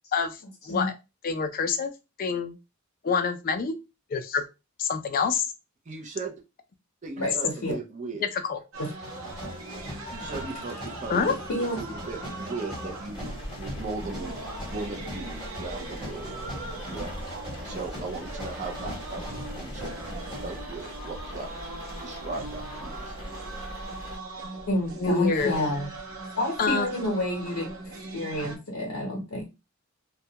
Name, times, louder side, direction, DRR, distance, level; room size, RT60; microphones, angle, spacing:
voice 1, 1.2-1.9 2.2-2.6 3.0-3.7 4.1-4.4 4.8-5.5 8.2-8.6 11.1-11.3 25.0-25.5 26.6-26.9, left 5 dB, 40° left, 8 dB, 0.3 m, -26 dB
voice 2, 5.9-6.3 7.0-8.3 10.1-16.4 16.9-17.1 17.6-19.3 19.5-20.1 20.4-21.5 22.0-23.2, right 3 dB, 35° right, 2 dB, 0.5 m, -38 dB
voice 3, 7.2-7.8 8.8-8.9 11.5-11.8 24.7-25.9 26.4-27.7 28.1-29.5, left 1 dB, 75° left, -1 dB, 0.7 m, -29 dB
sound 1, 8.7-28.6, right 2 dB, 65° right, 0.7 m, -40 dB
sound 2, 9.0-20.6, left 1 dB, 5° right, 1.1 m, -41 dB
sound 3, 13.1-24.2, equal, 25° left, 0.7 m, -41 dB
2.3 x 2.1 x 2.7 m, 0.26 s
head